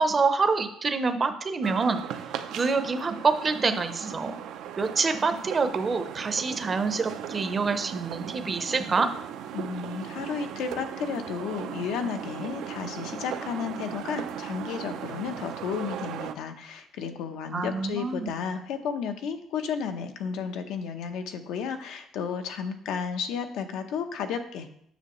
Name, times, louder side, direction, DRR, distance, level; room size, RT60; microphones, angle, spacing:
voice 1, 0.0-2.0 2.5-4.4 4.8-9.1 17.5-18.3, right 4 dB, 25° right, 8 dB, 0.6 m, -26 dB
sound 1, 1.6-16.3, right 9 dB, 75° right, 0.5 m, -37 dB
voice 2, 9.5-24.7, left 6 dB, 80° left, 6 dB, 0.7 m, -33 dB
7.0 x 6.3 x 3.0 m, 0.68 s
cardioid pair, 140°, 0 cm